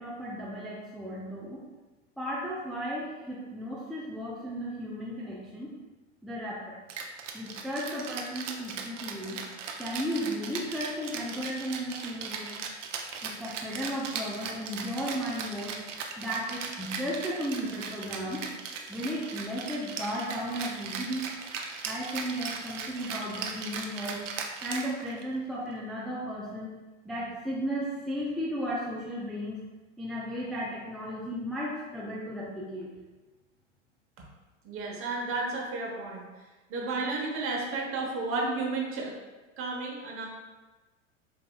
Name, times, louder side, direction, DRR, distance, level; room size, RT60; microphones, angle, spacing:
voice 1, 0.0-1.6 2.2-5.7 6.2-6.8 7.3-9.4 9.8-12.5 13.2-15.8 16.2-18.4 18.9-21.3 21.8-24.2 24.6-26.7 27.0-29.6 30.0-32.9, equal, ahead, -6 dB, 0.4 m, -35 dB
Rattle (instrument), 6.9-25.4, right 5 dB, 75° right, 0.6 m, -38 dB
voice 2, 34.6-36.3 36.7-39.1 39.6-40.3, right 3 dB, 35° right, -1 dB, 1.1 m, -32 dB
5.1 x 2.9 x 2.3 m, 1.2 s
hypercardioid pair, 95°, 37 cm